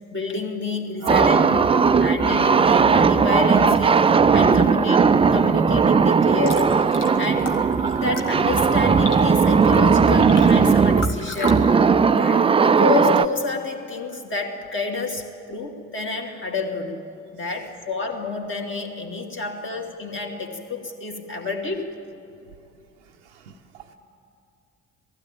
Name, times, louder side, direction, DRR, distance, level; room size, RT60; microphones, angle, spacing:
voice 1, 0.1-1.6 2.0-4.0 4.3-5.1 5.3-6.7 7.2-7.5 7.9-11.7 12.1-17.0 17.3-21.9, left 4 dB, 35° left, 1 dB, 2.5 m, -29 dB
voice 2, 1.0-2.2 23.0-23.9, right 6 dB, 80° right, 0 dB, 0.7 m, -39 dB
sound 1, 1.1-13.3, right 5 dB, 15° right, 0.4 m, -17 dB
sound 2, 6.2-11.5, left 3 dB, 85° left, 1.1 m, -37 dB
19.0 x 15.5 x 8.9 m, 2.6 s
figure-of-eight pair, 45°, 35 cm